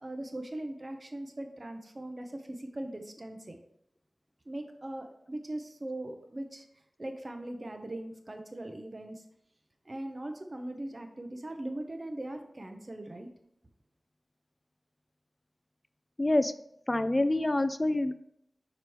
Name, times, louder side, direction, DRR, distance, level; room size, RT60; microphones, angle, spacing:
voice 1, 0.0-3.6 4.5-6.7 7.0-9.2 9.8-13.3, right 1 dB, 40° right, 4 dB, 0.7 m, -40 dB
voice 2, 16.2-16.5 16.9-18.1, left 1 dB, 30° left, 12 dB, 0.4 m, -26 dB
5.0 x 4.6 x 4.5 m, 0.75 s
cardioid pair, 45°, 0 cm